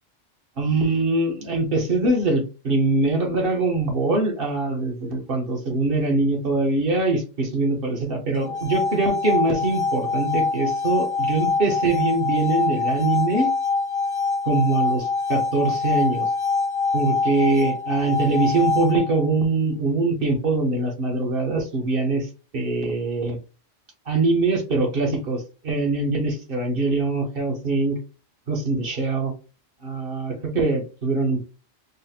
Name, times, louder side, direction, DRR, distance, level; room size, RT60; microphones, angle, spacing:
voice 1, 0.6-13.5 14.4-16.3 16.9-22.3 22.5-23.4 24.1-28.0 28.5-29.3 29.8-31.4, right 3 dB, 50° right, 3 dB, 1.1 m, -23 dB
sound 1, 8.3-19.3, left 4 dB, 50° left, 0.7 m, -24 dB
4.0 x 2.1 x 4.1 m, 0.33 s
omnidirectional pair, 1.3 m